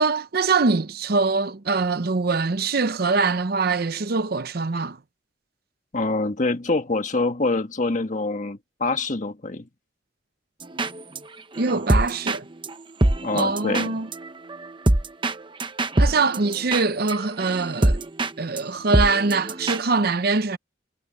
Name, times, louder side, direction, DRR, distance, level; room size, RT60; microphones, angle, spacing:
voice 1, 0.0-5.0 11.6-12.4 13.3-14.1 16.0-18.0 18.4-20.6, right 4 dB, 55° right, 0.7 m, -23 dB
voice 2, 5.9-9.7 13.2-13.9, left 3 dB, 40° left, 1.5 m, -25 dB
sound 1, 10.6-11.2 11.5-18.3 18.6-18.7 18.9-19.8, right 1 dB, 25° right, 0.9 m, -24 dB
head